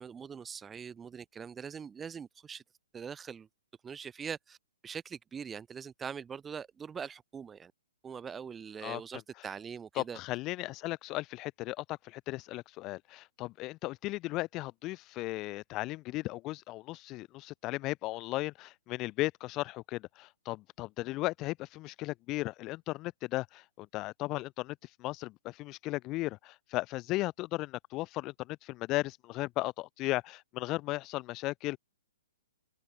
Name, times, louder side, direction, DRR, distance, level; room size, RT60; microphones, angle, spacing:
voice 1, 0.0-2.6 2.9-3.5 3.8-4.6 4.8-7.7 8.0-10.2, right 7 dB, 15° right, 0.6 m, -42 dB
voice 2, 10.0-31.8, left 19 dB, 30° left, 1.3 m, -36 dB
open air
hypercardioid pair, 135°, 0 cm